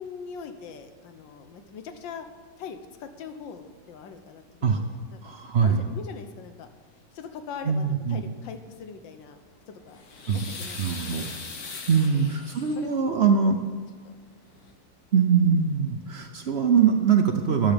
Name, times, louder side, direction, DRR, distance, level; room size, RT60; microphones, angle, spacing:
voice 1, 0.0-2.3 2.6-5.2 5.6-6.7 7.1-9.4 9.7-11.3 12.1-12.2 12.7-13.0 13.4-13.5 14.0-14.2, left 6 dB, 75° left, 8 dB, 1.6 m, -42 dB
voice 2, 5.2-5.8 7.6-8.2 10.3-10.5 10.8-11.3 11.9-13.6 15.1-17.7, right 6 dB, 70° right, 5 dB, 0.6 m, -22 dB
sound 1, 9.7-13.0 14.2-14.3 14.6-14.7, left 4 dB, 55° left, 1.6 m, -40 dB
13.0 x 10.5 x 5.1 m, 1.5 s
omnidirectional pair, 2.0 m